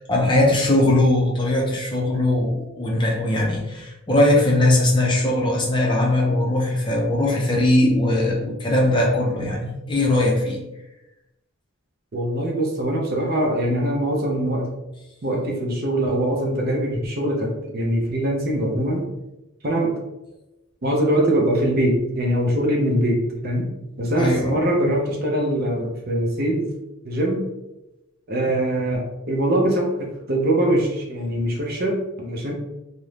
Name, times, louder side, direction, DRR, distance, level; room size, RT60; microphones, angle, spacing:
voice 1, 0.0-10.6 24.2-24.6, left 1 dB, 20° left, -2 dB, 0.4 m, -20 dB
voice 2, 12.1-14.7 15.2-19.1 19.6-20.0 20.8-23.7 24.0-26.7 27.0-27.4 28.3-32.5, right 1 dB, 45° right, 0 dB, 0.5 m, -22 dB
2.5 x 2.0 x 3.1 m, 0.93 s
head